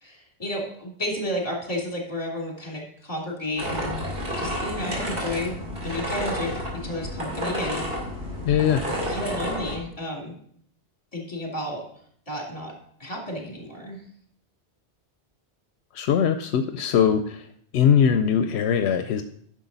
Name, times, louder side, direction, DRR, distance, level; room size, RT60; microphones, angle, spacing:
voice 1, 0.0-4.0 4.4-5.6 5.8-8.0 9.1-10.3 11.1-11.8 12.3-12.7 13.0-14.0, left 1 dB, 35° left, -1 dB, 2.7 m, -32 dB
sound 1, 3.6-9.7, equal, 60° right, 2.5 m, -30 dB
voice 2, 8.5-8.8 15.9-17.4 17.7-19.2, left 8 dB, 80° left, 8 dB, 0.8 m, -21 dB
10.0 x 6.2 x 4.0 m, 0.63 s
omnidirectional pair, 1.1 m